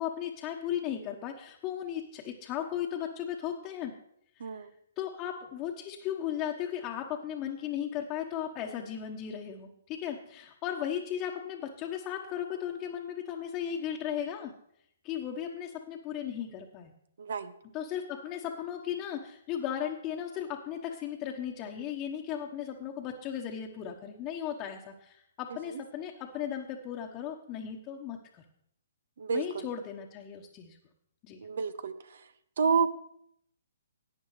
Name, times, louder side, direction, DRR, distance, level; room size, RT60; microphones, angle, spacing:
voice 1, 0.0-3.9 4.4-4.5 5.0-14.5 15.0-16.9 17.7-28.4 29.3-30.8 31.2-31.4, left 9 dB, 30° left, -1 dB, 1.2 m, -36 dB
voice 2, 17.2-17.5 29.2-29.4 31.4-31.9 32.6-32.9, right 5 dB, 60° right, 13 dB, 0.8 m, -28 dB
17.5 x 9.3 x 3.2 m, 0.72 s
figure-of-eight pair, 125°, 0 cm